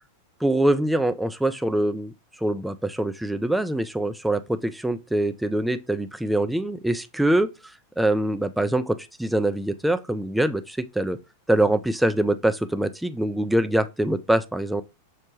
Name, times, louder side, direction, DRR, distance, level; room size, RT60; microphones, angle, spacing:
voice 1, 0.4-2.1 2.4-7.5 8.0-11.2 11.5-14.8, right 1 dB, 5° right, 0.3 m, -24 dB
6.2 x 2.1 x 3.0 m
figure-of-eight pair, 90°, 0 cm